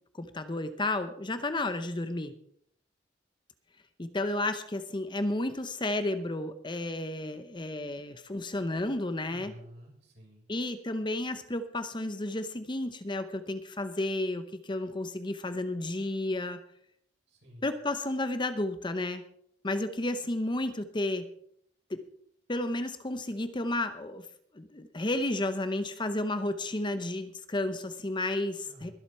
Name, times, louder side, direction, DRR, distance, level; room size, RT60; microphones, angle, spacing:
voice 1, 0.1-2.3 4.0-9.5 10.5-16.6 17.6-19.2 19.6-21.3 21.9-22.0 22.5-24.2 24.5-28.9, left 2 dB, 25° left, 10 dB, 0.8 m, -32 dB
voice 2, 9.2-10.5 17.3-17.7 28.6-28.9, equal, 65° right, -2 dB, 6.9 m, -50 dB
22.0 x 8.1 x 4.4 m, 0.67 s
head